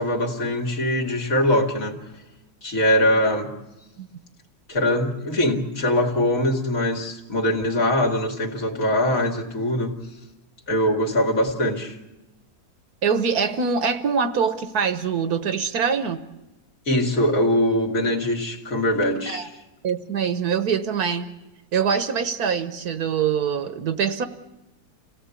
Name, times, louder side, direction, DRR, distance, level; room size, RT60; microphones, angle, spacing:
voice 1, 0.0-2.0 2.6-3.5 4.7-10.0 10.7-12.0 16.9-19.5, left 1 dB, 55° left, 2 dB, 2.6 m, -22 dB
voice 2, 13.0-16.2 19.3-19.5 19.8-21.3 21.7-24.3, right 6 dB, 70° right, 10 dB, 1.6 m, -24 dB
27.0 x 17.0 x 8.4 m, 1.0 s
omnidirectional pair, 1.7 m